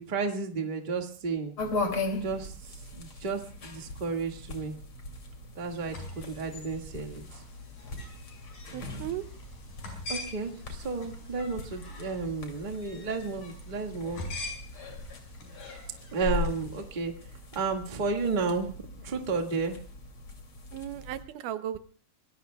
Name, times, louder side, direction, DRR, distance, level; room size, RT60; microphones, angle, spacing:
voice 1, 0.0-1.5 2.2-4.7 5.6-7.2 10.1-14.2 16.1-17.1 17.5-19.8, right 4 dB, 25° right, 3 dB, 1.2 m, -32 dB
sound 1, 1.6-21.2, left 2 dB, 40° left, 3.3 m, -39 dB
sound 2, 5.7-17.0, left 2 dB, 85° left, 6.9 m, -45 dB
voice 2, 8.7-9.2 20.7-21.8, right 11 dB, 80° right, 11 dB, 2.3 m, -36 dB
25.0 x 20.5 x 2.3 m, 0.42 s
omnidirectional pair, 3.7 m